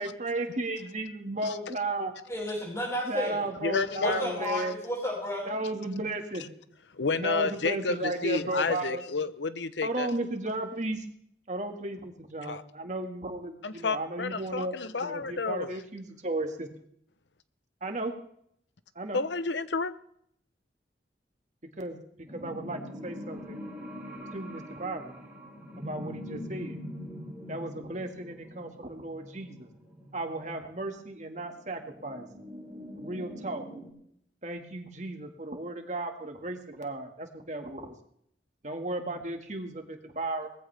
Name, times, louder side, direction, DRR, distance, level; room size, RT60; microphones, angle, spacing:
voice 1, 0.0-2.1 3.1-4.8 5.5-6.4 7.2-9.0 9.8-11.0 11.5-16.7 17.8-18.1 19.0-19.2 21.8-23.6 24.3-25.1 25.8-26.8 27.5-29.7 30.1-32.3 33.0-33.6 34.4-38.0 38.6-40.5, right 2 dB, 40° right, 4 dB, 2.0 m, -34 dB
voice 2, 2.3-3.5 4.0-5.6, left 1 dB, 15° left, -2 dB, 6.5 m, -32 dB
voice 3, 3.6-4.2 6.9-10.1 12.4-12.6 13.6-15.8 19.1-19.9, left 4 dB, 90° left, 14 dB, 0.9 m, -30 dB
sound 1, 22.3-33.9, equal, 10° right, 5.4 m, -43 dB
20.0 x 15.0 x 3.5 m, 0.69 s
head